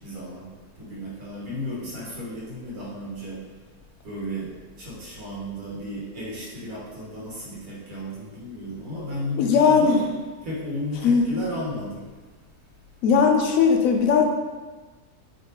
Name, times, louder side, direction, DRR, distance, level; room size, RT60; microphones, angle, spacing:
voice 1, 0.0-0.4 0.8-3.4 4.0-4.5 4.8-10.0 10.4-12.0, left 1 dB, 80° right, -6 dB, 1.8 m, -34 dB
voice 2, 9.4-10.0 11.0-11.3 13.0-14.2, left 5 dB, 75° left, 2 dB, 0.9 m, -18 dB
4.7 x 3.4 x 3.0 m, 1.3 s
omnidirectional pair, 1.5 m